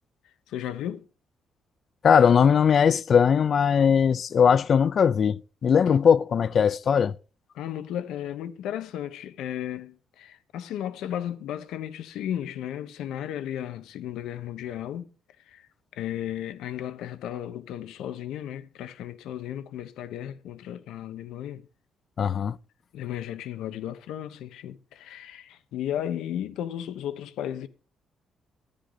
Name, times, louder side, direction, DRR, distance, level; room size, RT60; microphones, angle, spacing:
voice 1, 0.5-1.1 7.5-15.1 15.5-21.7 22.9-27.7, left 11 dB, 85° left, 1.0 m, -34 dB
voice 2, 2.0-7.1 22.2-22.6, left 7 dB, 55° left, 0.5 m, -20 dB
13.5 x 10.0 x 4.0 m
cardioid pair, 90°, 0 cm